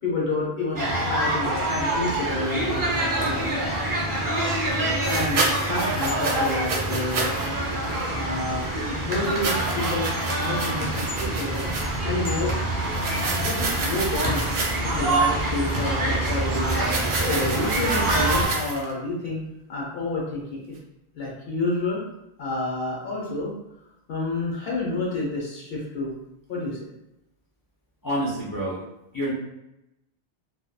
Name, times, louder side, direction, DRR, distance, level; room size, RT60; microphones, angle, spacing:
voice 1, 0.0-3.4 5.1-7.3 8.1-8.7 9.0-10.1 10.4-11.7 12.0-12.6 13.3-14.4 14.8-16.8 17.2-20.7 21.1-22.0 22.4-23.5 24.1-26.1 26.5-26.9, left 2 dB, 70° left, -4 dB, 0.9 m, -29 dB
sound 1, 0.7-18.5, right 1 dB, 25° right, 0.4 m, -26 dB
sound 2, 3.2-3.3 5.0-7.5 7.8-8.0 9.2-12.0 12.8-15.0 16.6-18.9, right 3 dB, 75° right, 0.8 m, -30 dB
voice 2, 28.0-28.8 29.1-29.3, equal, 25° left, -7 dB, 0.4 m, -27 dB
2.7 x 2.2 x 2.2 m, 0.88 s
omnidirectional pair, 1.1 m